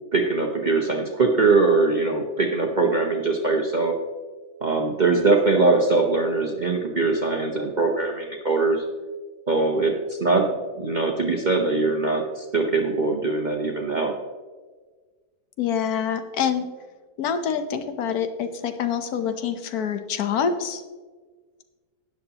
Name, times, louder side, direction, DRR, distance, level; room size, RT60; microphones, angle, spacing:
voice 1, 0.1-3.9 4.6-8.8 9.5-10.5 10.8-14.1, right 3 dB, 35° right, 1 dB, 0.8 m, -22 dB
voice 2, 15.6-16.7 17.2-20.8, left 7 dB, 70° left, 9 dB, 1.3 m, -26 dB
12.5 x 9.8 x 2.9 m, 1.4 s
omnidirectional pair, 1.8 m